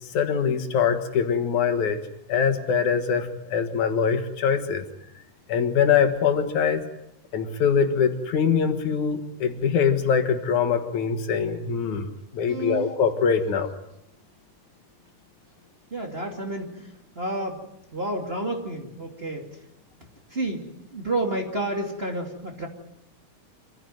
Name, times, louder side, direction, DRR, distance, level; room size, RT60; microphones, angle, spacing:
voice 1, 0.1-2.0 2.3-4.8 5.5-6.8 7.3-13.7, left 6 dB, 75° left, 8 dB, 3.0 m, -23 dB
voice 2, 12.5-12.9 15.9-17.6 17.9-19.5 20.3-20.7 20.9-22.7, right 2 dB, 20° right, 1 dB, 2.5 m, -30 dB
26.0 x 15.5 x 9.3 m, 0.80 s
omnidirectional pair, 3.5 m